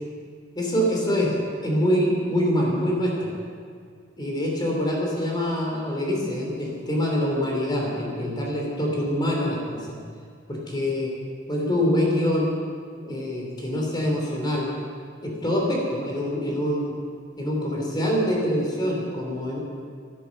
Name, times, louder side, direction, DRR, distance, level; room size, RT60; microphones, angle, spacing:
voice 1, 0.5-1.4 1.6-3.3 4.2-10.0 10.5-11.1 11.5-12.5 13.0-14.7 15.2-16.9 17.4-19.6, equal, 25° left, -2 dB, 3.2 m, -25 dB
13.0 x 12.0 x 7.2 m, 2.1 s
head